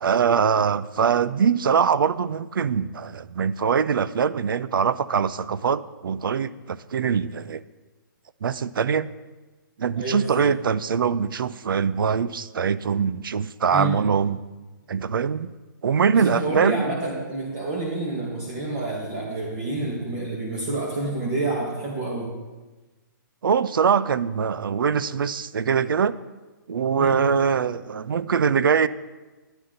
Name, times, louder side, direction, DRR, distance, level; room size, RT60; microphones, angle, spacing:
voice 1, 0.0-7.6 8.4-9.1 9.8-14.4 14.9-15.5 15.8-16.8 23.4-26.2 26.7-28.9, right 6 dB, 80° right, 16 dB, 0.5 m, -23 dB
voice 2, 10.0-10.4 13.7-13.9 16.1-22.3 27.0-27.2, right 2 dB, 25° right, -3 dB, 1.9 m, -28 dB
12.5 x 9.9 x 4.0 m, 1.2 s
hypercardioid pair, 170°, 11 cm